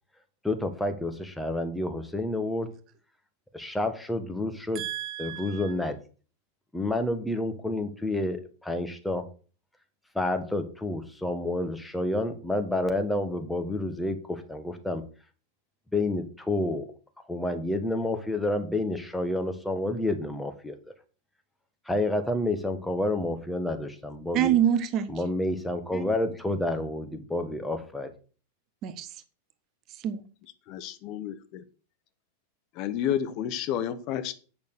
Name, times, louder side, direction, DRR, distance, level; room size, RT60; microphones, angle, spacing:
voice 1, 0.4-2.7 3.5-4.8 5.2-6.0 6.7-9.3 10.2-15.0 15.9-16.9 17.3-20.7 21.9-24.5 25.1-28.1, left 1 dB, 5° left, 6 dB, 1.6 m, -29 dB
voice 2, 4.7-5.7 24.3-25.1 28.8-29.1 29.9-30.2, right 10 dB, 35° right, 13 dB, 0.9 m, -26 dB
voice 3, 30.7-31.6 32.8-34.3, left 10 dB, 40° left, 12 dB, 0.9 m, -30 dB
8.7 x 6.2 x 6.4 m, 0.38 s
figure-of-eight pair, 90°, 0 cm